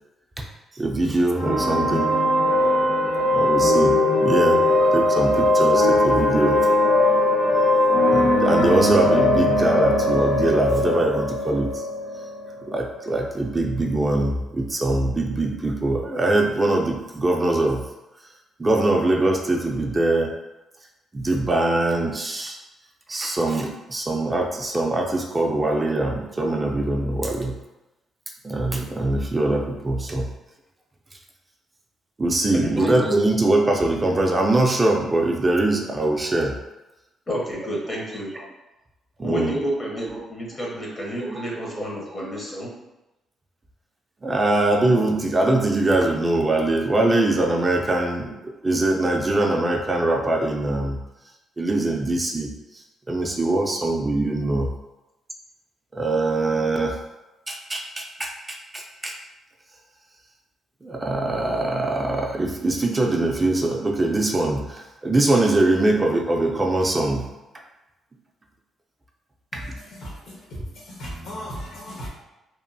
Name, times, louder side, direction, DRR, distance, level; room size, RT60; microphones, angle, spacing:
voice 1, 0.7-2.1 3.3-4.6 4.9-6.6 8.1-11.8 12.7-17.8 18.6-20.3 21.1-22.6 23.1-27.6 28.4-30.3 32.2-36.6 39.2-39.6 40.0-40.3 41.2-41.8 44.2-51.0 51.6-52.5 53.1-54.7 55.9-57.0 57.5-59.2 60.8-67.3 69.5-69.6, right 2 dB, 25° right, 1 dB, 0.3 m, -22 dB
sound 1, 1.4-13.0, left 1 dB, 55° left, 1.1 m, -20 dB
voice 2, 32.5-33.0 37.3-38.3 39.2-42.7, equal, 35° left, -2 dB, 0.7 m, -30 dB
voice 3, 69.5-70.5 70.7-72.1, equal, 70° left, -4 dB, 1.0 m, -36 dB
2.9 x 2.0 x 2.6 m, 0.99 s
cardioid pair, 90°, 0 cm